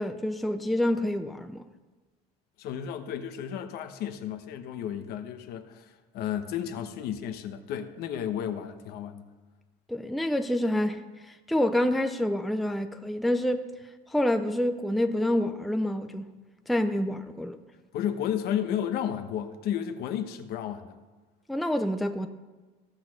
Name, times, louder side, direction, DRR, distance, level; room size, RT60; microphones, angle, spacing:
voice 1, 0.0-1.6 9.9-13.7 14.1-16.3 16.7-17.6 21.5-22.3, left 1 dB, ahead, 0.5 m, -27 dB
voice 2, 2.6-9.2 17.9-21.0, left 9 dB, 60° left, 1.1 m, -33 dB
16.0 x 6.3 x 6.3 m
cardioid pair, 150°, 18 cm